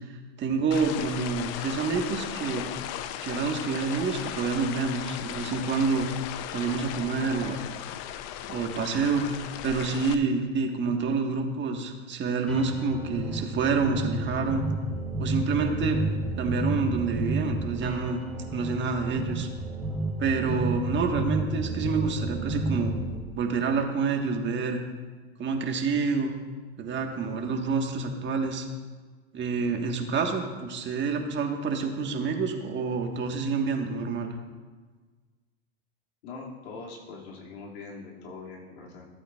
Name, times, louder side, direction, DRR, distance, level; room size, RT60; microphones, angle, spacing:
voice 1, 0.4-2.7 3.2-6.1 6.5-7.7 8.5-14.6 15.2-16.0 16.4-18.2 18.5-19.5 20.2-22.9 23.4-24.8 25.4-26.3 26.8-28.7 29.3-34.3, right 4 dB, 35° right, 3 dB, 1.5 m, -28 dB
sound 1, 0.7-10.1, left 11 dB, 50° left, 0.7 m, -36 dB
sound 2, 12.5-23.1, right 2 dB, 5° left, 3.2 m, -31 dB
voice 2, 36.2-39.1, left 4 dB, 80° left, -2 dB, 2.5 m, -42 dB
15.0 x 8.2 x 2.4 m, 1.4 s
hypercardioid pair, 95°, 32 cm